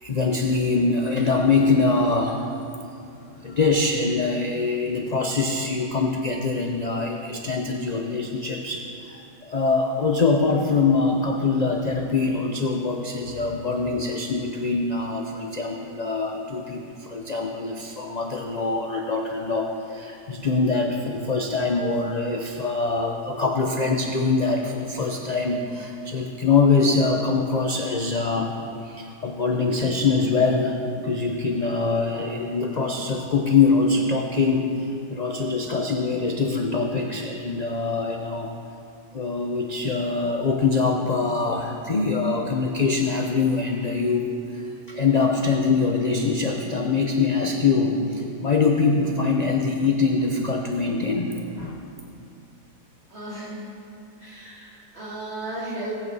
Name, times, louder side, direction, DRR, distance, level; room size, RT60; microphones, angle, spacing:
voice 1, 0.0-2.5 3.4-28.6 28.8-38.6 39.1-51.8, left 4 dB, 50° left, 1 dB, 0.5 m, -23 dB
voice 2, 53.1-53.7 54.2-55.9, right 2 dB, 40° right, -7 dB, 3.2 m, -35 dB
18.0 x 8.6 x 4.1 m, 2.6 s
omnidirectional pair, 1.7 m